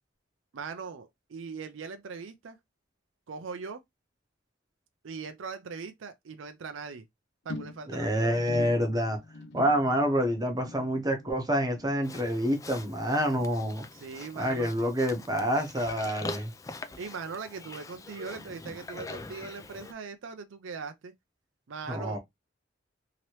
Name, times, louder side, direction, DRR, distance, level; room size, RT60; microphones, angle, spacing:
voice 1, 0.5-2.6 3.3-3.8 5.0-7.0 7.4-8.4 13.9-14.7 17.0-21.1 21.7-22.2, right 5 dB, 70° right, 0.5 m, -40 dB
sound 1, 7.5-14.1 14.3-14.8 15.1-15.2, left 2 dB, 65° left, 0.6 m, -46 dB
voice 2, 7.9-9.2 9.5-13.8 14.4-16.5 21.9-22.2, equal, 20° right, 0.8 m, -27 dB
Livestock farm animals working animals, 12.0-19.9, left 3 dB, 15° left, 0.3 m, -43 dB
2.9 x 2.9 x 3.0 m
head